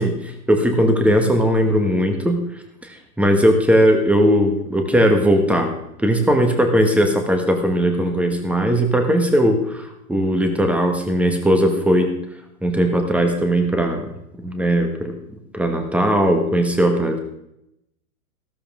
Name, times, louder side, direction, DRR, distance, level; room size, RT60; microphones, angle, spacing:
voice 1, 0.0-2.4 2.8-12.1 12.6-14.1 14.4-15.1 15.5-17.2, equal, 5° right, 4 dB, 1.6 m, -18 dB
14.0 x 13.0 x 3.6 m, 0.81 s
hypercardioid pair, 135°, 44 cm